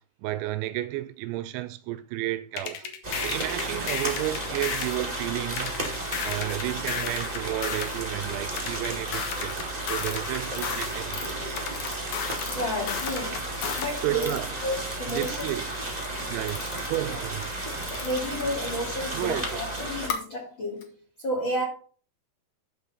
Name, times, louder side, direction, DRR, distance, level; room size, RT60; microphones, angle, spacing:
voice 1, 0.2-2.8 3.2-5.8 6.2-11.6 14.0-14.6 15.1-15.7 16.3-17.5 19.1-19.6, right 16 dB, 85° right, 2.8 m, -32 dB
sound 1, 2.6-5.0 5.6-8.0 8.6-11.0 11.6-14.0, left 7 dB, 70° left, 1.9 m, -33 dB
sound 2, 3.0-20.1, right 1 dB, 45° right, 0.5 m, -33 dB
voice 2, 3.1-3.6 11.0-11.5 11.8-12.0 12.5-15.5 17.1-17.2 18.0-20.9 21.2-21.6, left 1 dB, 45° left, 1.6 m, -33 dB
sound 3, 8.9-9.0 9.5-16.2 16.5-19.3 20.0-20.2 20.8-20.9, left 7 dB, 90° left, 1.5 m, -40 dB
12.5 x 5.3 x 4.2 m
omnidirectional pair, 5.5 m